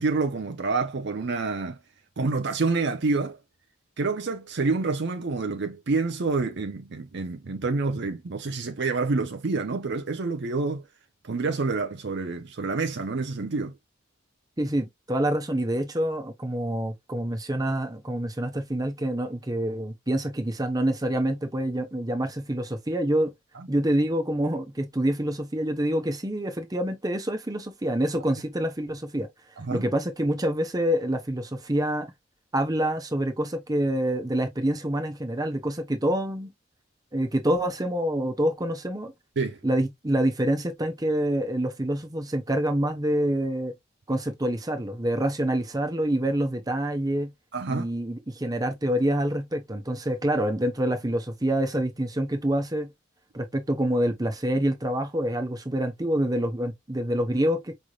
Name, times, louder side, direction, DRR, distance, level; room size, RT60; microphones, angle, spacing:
voice 1, 0.0-1.8 2.2-3.4 4.0-10.8 11.2-13.7 23.5-23.7 29.6-29.9 39.4-39.6 47.5-47.9, right 3 dB, 55° right, 0.6 m, -28 dB
voice 2, 14.6-23.3 23.7-29.3 29.7-32.1 32.5-36.5 37.1-39.1 39.6-43.7 44.1-47.3 47.7-52.9 53.3-57.7, right 1 dB, 20° right, 0.9 m, -26 dB
5.4 x 3.2 x 2.3 m
head